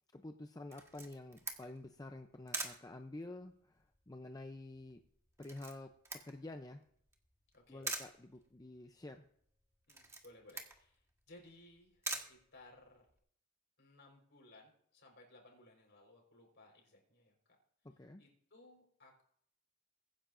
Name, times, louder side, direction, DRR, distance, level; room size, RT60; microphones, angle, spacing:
voice 1, 0.1-5.0 5.4-5.9 6.2-6.8 7.7-9.2 17.8-18.2, left 2 dB, 15° left, 6 dB, 0.5 m, -49 dB
Camera, 0.7-13.2, right 3 dB, 15° right, 1.4 m, -47 dB
voice 2, 7.5-7.9 9.9-13.1 13.8-17.3 18.2-19.2, left 2 dB, 55° left, 1 dB, 4.4 m, -61 dB
23.0 x 10.5 x 2.6 m, 0.65 s
head